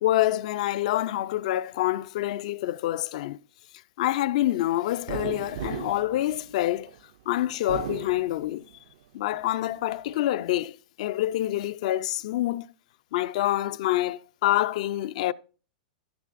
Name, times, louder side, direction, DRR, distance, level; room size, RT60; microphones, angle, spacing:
voice 1, 0.0-3.4 4.0-6.9 7.3-8.7 9.1-12.7 13.1-15.3, left 14 dB, 55° left, 0.4 m, -26 dB
sound 1, 5.1-7.0 7.5-8.9 9.3-10.2, right 12 dB, 55° right, 0.5 m, -37 dB
17.5 x 6.7 x 2.5 m
supercardioid pair, 160°, 5 cm